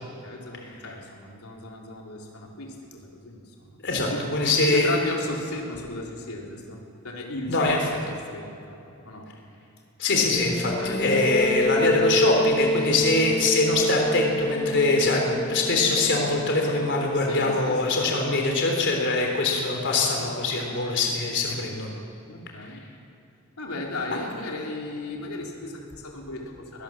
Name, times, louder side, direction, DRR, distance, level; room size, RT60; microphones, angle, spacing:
voice 1, 0.2-3.8 4.1-4.2 4.6-6.8 7.0-8.8 9.0-9.3 10.8-11.0 13.0-13.1 17.1-18.4 19.1-19.3 21.4-21.8 22.3-22.8 23.6-26.8, left 2 dB, 90° left, -1 dB, 3.6 m, -36 dB
voice 2, 3.8-4.9 7.5-7.8 10.0-21.9 22.7-22.8, left 2 dB, 55° left, 1 dB, 3.6 m, -23 dB
sound 1, 10.3-17.7, left 1 dB, 25° left, 1.0 m, -27 dB
22.5 x 19.5 x 7.4 m, 2.8 s
head